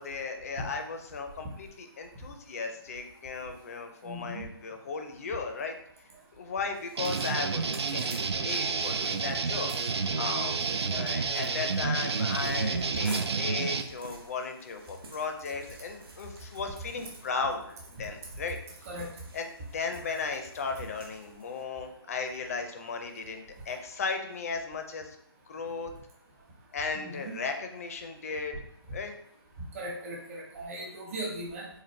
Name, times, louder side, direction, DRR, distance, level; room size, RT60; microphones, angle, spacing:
voice 1, 0.0-9.7 10.2-10.5 10.9-18.6 19.3-25.2 25.5-25.9 26.7-28.6 28.9-29.1, left 4 dB, 35° left, 5 dB, 0.4 m, -36 dB
voice 2, 4.0-4.5 18.8-19.1 26.9-27.3 29.7-31.7, right 1 dB, 30° right, -2 dB, 1.0 m, -38 dB
sound 1, 6.7-21.6, right 3 dB, 65° right, 0.7 m, -51 dB
sound 2, 7.0-13.8, right 5 dB, 85° right, 0.4 m, -30 dB
4.2 x 2.4 x 3.1 m, 0.73 s
hypercardioid pair, 155°, 13 cm